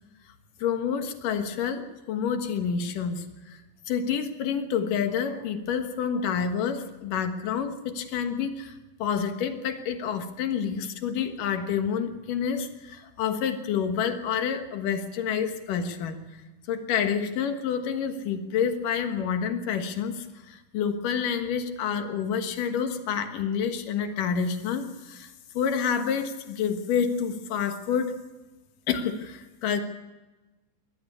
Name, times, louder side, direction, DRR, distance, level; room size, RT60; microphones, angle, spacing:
voice 1, 0.6-3.6 3.9-16.2 16.7-28.1 28.9-29.8, left 7 dB, 80° left, 7 dB, 3.1 m, -28 dB
22.0 x 17.5 x 8.5 m, 1.1 s
omnidirectional pair, 3.7 m